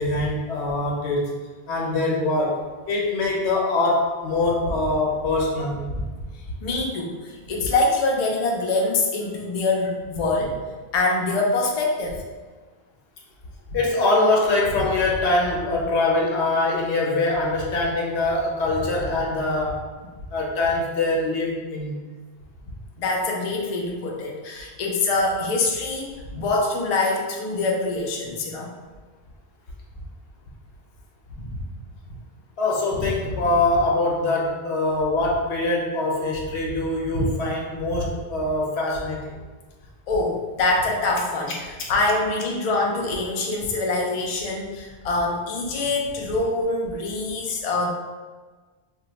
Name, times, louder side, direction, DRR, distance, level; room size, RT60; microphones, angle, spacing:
voice 1, 0.0-1.3 1.7-5.9 13.7-19.8 20.3-21.9 26.3-26.4 31.4-31.6 32.6-39.4 41.5-41.9, left 2 dB, 85° left, -2 dB, 1.0 m, -23 dB
voice 2, 6.6-10.6 10.9-12.2 23.0-28.7 40.1-41.5 41.9-47.9, left 3 dB, 50° left, -1 dB, 0.5 m, -24 dB
2.6 x 2.2 x 3.9 m, 1.3 s
omnidirectional pair, 1.1 m